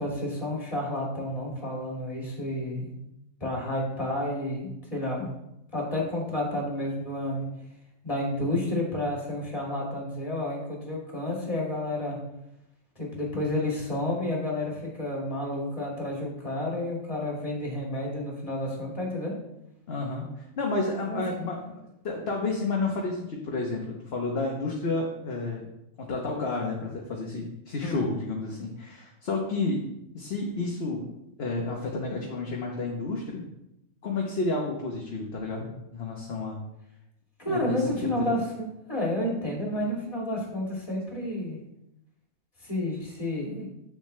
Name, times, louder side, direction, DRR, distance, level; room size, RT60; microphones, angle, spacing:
voice 1, 0.0-2.9 3.4-5.3 5.7-7.5 8.0-12.2 13.0-19.3 21.1-21.2 27.8-28.1 37.4-41.6 42.6-43.7, left 1 dB, 25° left, -3 dB, 2.4 m, -30 dB
voice 2, 19.9-21.7 22.0-25.7 26.0-29.9 30.1-31.1 31.4-33.5 34.0-36.6 37.5-38.3, left 3 dB, 50° left, -1 dB, 1.2 m, -31 dB
7.9 x 7.1 x 3.2 m, 0.84 s
omnidirectional pair, 1.4 m